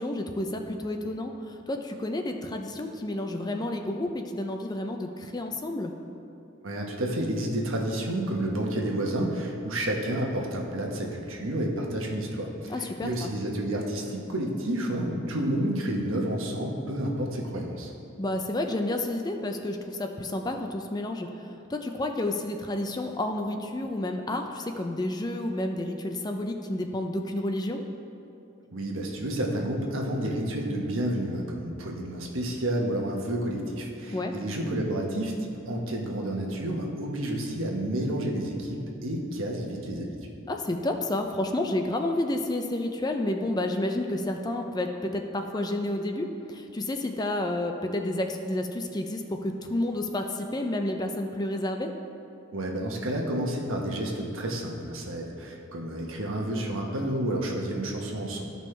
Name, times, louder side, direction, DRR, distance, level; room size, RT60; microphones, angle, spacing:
voice 1, 0.0-5.9 12.7-13.3 18.2-21.3 21.7-27.8 34.1-34.3 40.5-51.9, left 1 dB, 20° left, 4 dB, 0.4 m, -30 dB
voice 2, 6.6-17.9 28.7-40.3 52.5-58.4, right 1 dB, 85° right, 0 dB, 1.2 m, -30 dB
13.5 x 5.3 x 3.3 m, 2.8 s
head